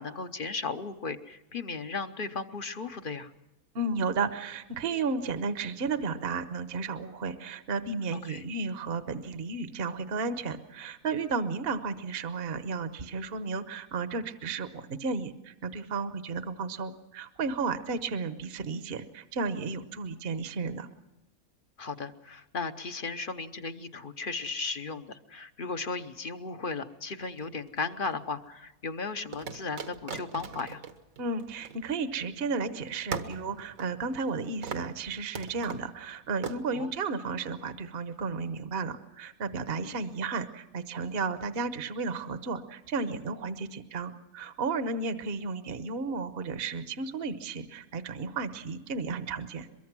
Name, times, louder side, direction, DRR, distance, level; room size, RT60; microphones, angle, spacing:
voice 1, 0.0-3.3 8.3-8.4 21.8-30.8 36.7-36.9 39.8-39.9, left 4 dB, 45° left, 9 dB, 1.0 m, -36 dB
voice 2, 3.7-20.9 31.2-49.7, right 4 dB, 50° right, 10 dB, 1.2 m, -33 dB
sound 1, 27.2-28.1 29.3-32.3 32.6-32.7 33.1-34.4 34.6-35.0 35.3-35.9 36.4-36.6, right 5 dB, 75° right, 1.7 m, -39 dB
23.0 x 22.5 x 6.1 m, 0.99 s
omnidirectional pair, 1.5 m